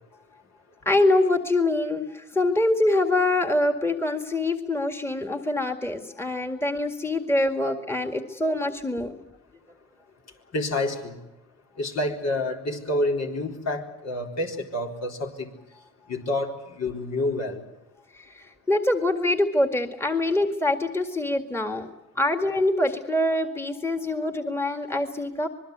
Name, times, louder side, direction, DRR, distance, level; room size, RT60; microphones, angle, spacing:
voice 1, 0.9-9.2 18.1-21.9 22.2-25.5, left 2 dB, 10° left, 2.0 m, -24 dB
voice 2, 10.5-11.2 11.8-15.5 16.1-17.6, left 1 dB, 60° left, 4.2 m, -28 dB
25.5 x 21.5 x 8.1 m
cardioid pair, 90°, 30 cm